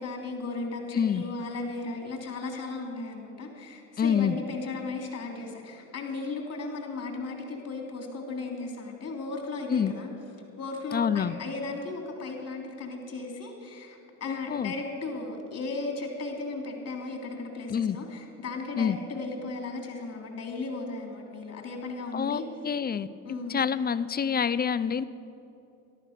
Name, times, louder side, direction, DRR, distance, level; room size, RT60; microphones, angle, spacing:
voice 1, 0.0-10.1 10.6-22.4 23.2-23.6, left 3 dB, 45° left, 2 dB, 3.3 m, -36 dB
voice 2, 4.0-4.4 9.7-9.9 10.9-11.3 14.2-14.7 17.7-18.0 18.8-19.0 22.1-23.1 23.5-25.0, left 7 dB, 25° left, 16 dB, 0.5 m, -27 dB
13.5 x 12.0 x 6.7 m, 2.7 s
supercardioid pair, 80°, 35 cm